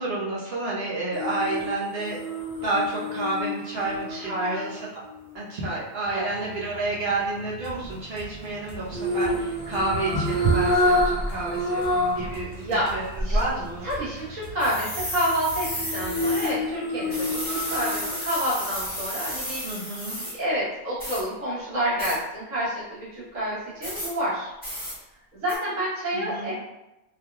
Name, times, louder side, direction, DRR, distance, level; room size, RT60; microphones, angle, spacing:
voice 1, 0.0-2.2 2.6-4.9 5.3-13.9 19.6-20.2 26.1-26.5, right 2 dB, 55° right, -5 dB, 1.1 m, -30 dB
sound 1, 1.1-5.3 8.9-12.3 12.7-12.8 15.6-18.5 18.8-19.0, left 1 dB, 30° right, 1.2 m, -28 dB
voice 2, 4.1-4.7 6.1-6.3 12.5-12.9 13.2-13.4 13.8-19.6 20.4-24.5 25.3-26.5, equal, 85° right, -8 dB, 1.6 m, -28 dB
sound 2, 6.0-16.5, right 3 dB, 45° left, 1.0 m, -43 dB
sound 3, 7.8-8.0 8.5-8.6 8.9-11.3 11.7-11.8 12.2-12.7 13.2-14.0 14.6-16.5 17.1-20.3 21.0-21.2 22.0-22.2 23.8-24.1 24.6-24.9 25.5-25.6, right 1 dB, 5° left, 1.4 m, -31 dB
3.6 x 3.0 x 2.3 m, 0.96 s
omnidirectional pair, 1.3 m